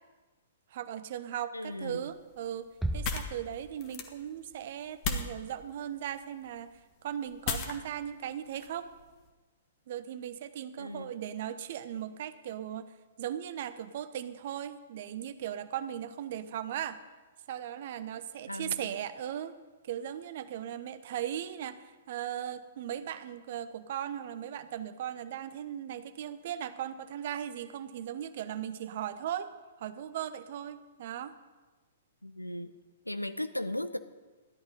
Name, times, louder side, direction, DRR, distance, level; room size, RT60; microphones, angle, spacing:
voice 1, 0.7-8.9 9.9-17.0 17.5-19.5 19.8-29.5 29.8-31.3, right 10 dB, 45° right, 13 dB, 0.8 m, -38 dB
voice 2, 1.5-2.0 10.8-11.1 18.5-19.0 32.2-32.7 33.0-34.0, left 1 dB, 85° left, 11 dB, 0.7 m, -37 dB
sound 1, 1.8-9.3, left 5 dB, 35° left, 1.5 m, -40 dB
sound 2, 2.8-4.4, right 1 dB, ahead, 0.6 m, -36 dB
14.0 x 11.0 x 5.4 m, 1.3 s
figure-of-eight pair, 115°, 0 cm